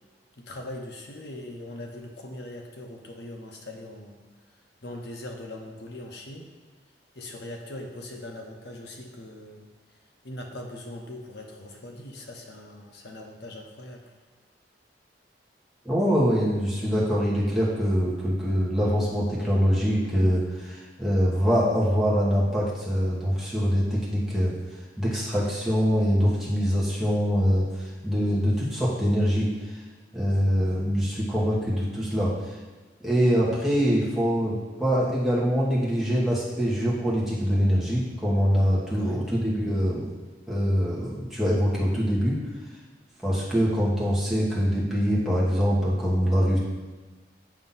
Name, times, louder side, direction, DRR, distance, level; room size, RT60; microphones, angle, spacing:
voice 1, 0.4-4.2 4.8-6.5 7.1-9.7 10.2-14.0 38.9-39.3, left 1 dB, 65° left, 1 dB, 0.8 m, -40 dB
voice 2, 15.8-24.5 25.0-29.8 30.1-32.6 33.0-40.1 40.5-42.4 43.2-46.6, equal, ahead, -7 dB, 1.1 m, -24 dB
7.3 x 2.7 x 5.5 m, 1.3 s
head